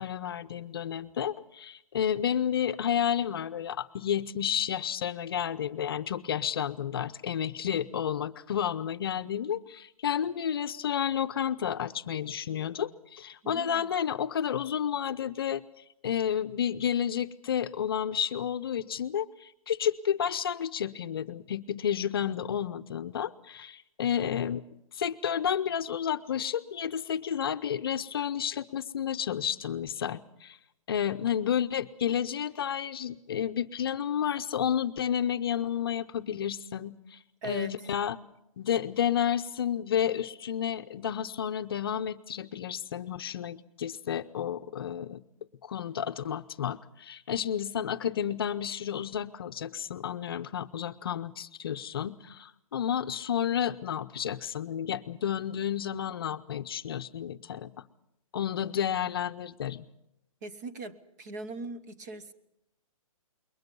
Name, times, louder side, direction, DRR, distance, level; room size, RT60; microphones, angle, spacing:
voice 1, 0.0-15.6 16.0-24.6 24.9-30.6 30.9-38.2 38.6-45.2 45.6-57.7 58.3-59.8, left 9 dB, 40° left, 0.7 m, -31 dB
voice 2, 13.4-13.9 37.4-37.7 60.4-62.3, right 2 dB, 30° right, 1.1 m, -40 dB
27.5 x 22.5 x 5.4 m
hypercardioid pair, 170°, 18 cm